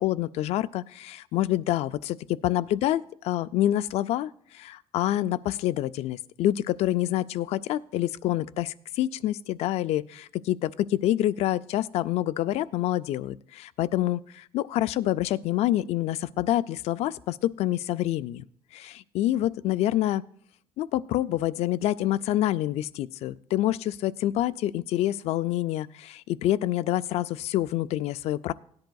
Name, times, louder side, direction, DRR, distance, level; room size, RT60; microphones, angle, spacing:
voice 1, 0.0-18.4 18.7-20.2 20.8-28.5, left 13 dB, 75° left, 15 dB, 0.4 m, -27 dB
17.5 x 10.5 x 2.3 m, 0.64 s
cardioid pair, 150°, 11 cm